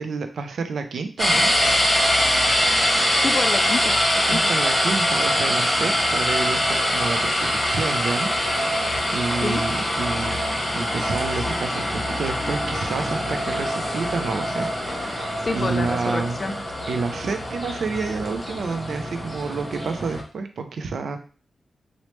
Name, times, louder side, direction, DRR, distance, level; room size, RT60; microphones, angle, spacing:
voice 1, 0.0-1.5 4.3-8.3 9.1-10.4 10.7-16.4 16.9-21.2, right 4 dB, 80° right, 7 dB, 0.4 m, -29 dB
sound 1, 1.2-20.2, equal, 15° left, 0.7 m, -23 dB
voice 2, 2.8-4.5 9.4-9.6 15.4-16.5, left 3 dB, 35° left, 7 dB, 0.3 m, -29 dB
3.0 x 2.0 x 3.0 m, 0.38 s
wide cardioid pair, 105°, 0 cm